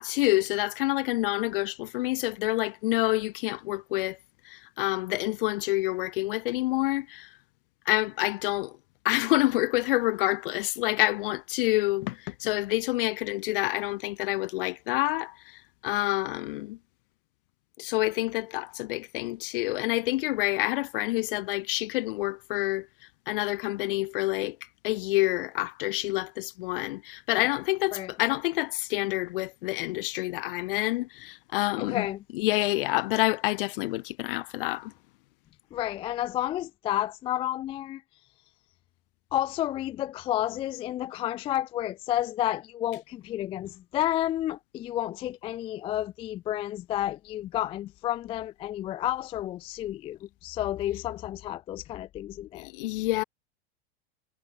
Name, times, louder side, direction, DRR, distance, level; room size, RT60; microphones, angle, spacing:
voice 1, 0.0-4.2 4.4-7.3 7.9-8.8 9.0-16.8 17.8-22.9 23.3-24.6 24.8-32.1 32.3-34.9 52.5-53.2, left 19 dB, 55° left, 2.0 m, -28 dB
voice 2, 31.8-32.2 35.7-38.0 39.3-52.7, left 13 dB, 20° left, 0.3 m, -31 dB
figure-of-eight pair, 90°, 32 cm